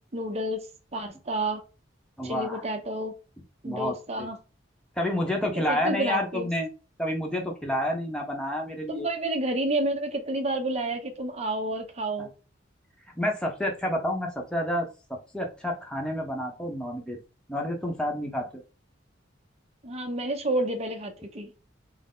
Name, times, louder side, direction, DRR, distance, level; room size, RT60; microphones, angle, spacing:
voice 1, 0.1-0.7 0.9-1.6 2.2-3.1 3.6-4.4 5.5-6.5 8.9-12.3 19.8-21.5, right 1 dB, 35° right, 4 dB, 0.8 m, -30 dB
voice 2, 2.2-2.6 3.6-4.3 5.0-6.7 7.0-9.1 13.2-14.9 15.3-17.2 17.5-18.5, left 1 dB, 5° left, 0 dB, 0.9 m, -29 dB
4.4 x 2.1 x 3.8 m, 0.32 s
head